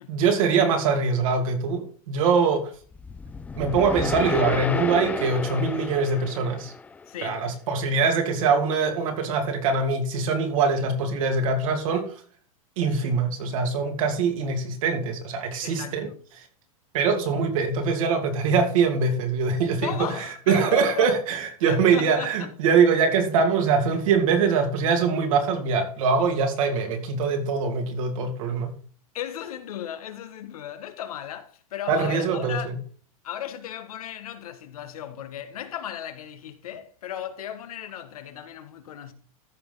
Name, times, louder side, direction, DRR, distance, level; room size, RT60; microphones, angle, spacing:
voice 1, 0.1-2.7 3.5-6.7 7.2-12.1 12.8-16.1 16.4-16.5 16.9-28.7 31.9-32.8, right 5 dB, 65° right, 2.7 m, -23 dB
sound 1, 2.9-7.2, left 4 dB, 10° left, 0.4 m, -32 dB
voice 2, 7.1-7.5 15.6-16.2 19.8-21.1 21.6-22.5 29.1-32.7 33.2-39.1, left 10 dB, 80° left, 1.5 m, -36 dB
14.0 x 5.2 x 4.0 m
supercardioid pair, 140°, 18 cm